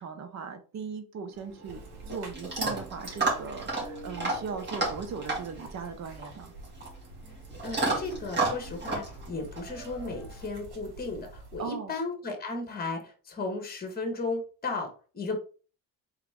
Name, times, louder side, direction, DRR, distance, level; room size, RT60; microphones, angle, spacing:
voice 1, 0.0-6.5 11.6-11.9, right 5 dB, 45° right, 8 dB, 0.8 m, -38 dB
Chewing mastication / Dog, 1.3-10.5, right 3 dB, 30° right, 2.3 m, -33 dB
sound 1, 1.7-11.7, right 2 dB, 75° right, 2.3 m, -47 dB
voice 2, 7.6-14.9 15.1-15.4, left 3 dB, 25° left, 4 dB, 1.4 m, -35 dB
4.0 x 3.7 x 3.5 m, 0.37 s
cardioid pair, 135°, 38 cm